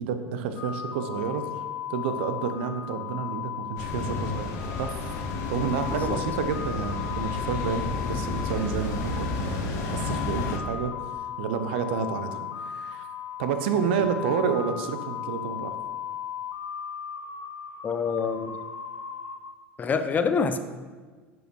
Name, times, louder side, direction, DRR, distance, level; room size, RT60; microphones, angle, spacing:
voice 1, 0.0-1.5 1.9-4.5 4.8-4.9 5.5-10.9 11.4-13.1 13.4-15.8, right 6 dB, 60° right, 9 dB, 0.7 m, -29 dB
sound 1, 0.6-19.4, left 9 dB, 60° left, 1.3 m, -36 dB
sound 2, 3.8-10.6, left 3 dB, 45° left, 1.0 m, -32 dB
voice 2, 17.8-18.6 19.8-20.6, left 5 dB, 25° left, 10 dB, 0.6 m, -26 dB
10.0 x 6.2 x 3.1 m, 1.5 s
figure-of-eight pair, 75°, 7 cm